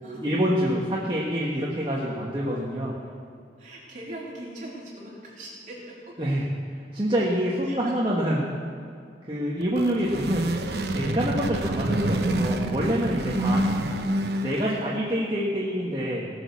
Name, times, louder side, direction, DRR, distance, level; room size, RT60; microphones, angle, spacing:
voice 1, 0.1-2.9 6.2-8.5 9.3-10.5 10.9-13.6 14.4-16.3, equal, 25° right, -5 dB, 1.4 m, -26 dB
voice 2, 3.6-6.1 7.6-7.9 10.2-10.4, right 1 dB, 45° right, -5 dB, 3.7 m, -41 dB
sound 1, 9.6-14.9, right 1 dB, 65° right, 0.9 m, -27 dB
18.5 x 6.5 x 7.1 m, 2.4 s
head